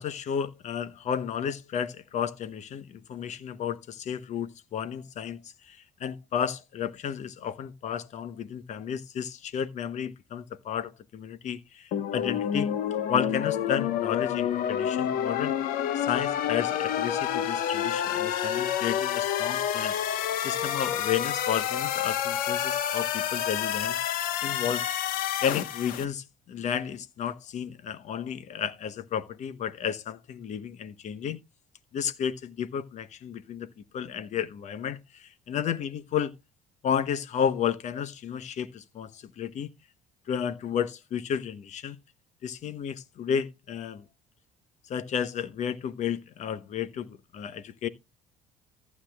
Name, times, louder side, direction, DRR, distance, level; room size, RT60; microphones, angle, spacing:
voice 1, 0.0-12.7 13.1-15.6 15.9-20.0 20.4-24.0 24.4-24.9 25.4-31.4 31.9-36.3 36.8-39.7 40.3-42.0 42.4-44.0 44.9-47.9, left 8 dB, 50° left, 0.9 m, -32 dB
sound 1, 11.9-26.0, left 10 dB, 75° left, 1.2 m, -28 dB
14.5 x 8.3 x 2.3 m
cardioid pair, 105°, 15 cm